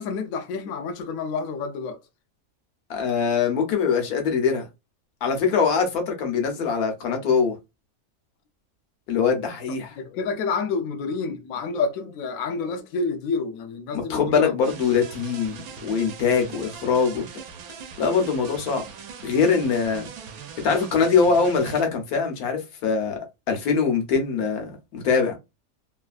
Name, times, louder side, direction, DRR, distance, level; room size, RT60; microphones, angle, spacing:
voice 1, 0.0-2.0 9.7-14.5, left 4 dB, 75° left, 1.0 m, -29 dB
voice 2, 2.9-4.7 5.2-7.5 9.1-9.9 13.9-17.2 18.0-18.8 19.2-20.1 20.6-23.2 23.5-25.4, left 5 dB, 90° left, 1.3 m, -23 dB
sound 1, 14.6-21.8, right 6 dB, 80° right, 1.1 m, -40 dB
3.2 x 2.4 x 2.3 m
omnidirectional pair, 1.5 m